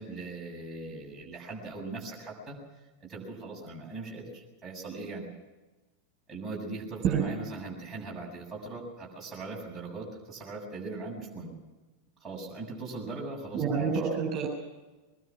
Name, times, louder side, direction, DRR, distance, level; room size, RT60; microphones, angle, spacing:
voice 1, 0.0-2.6 3.0-5.3 6.3-11.5 12.2-13.9, right 3 dB, 15° right, -3 dB, 7.7 m, -40 dB
voice 2, 13.5-14.5, right 6 dB, 35° right, 1 dB, 7.0 m, -27 dB
22.5 x 22.5 x 6.2 m, 1.2 s
figure-of-eight pair, 90°, 0 cm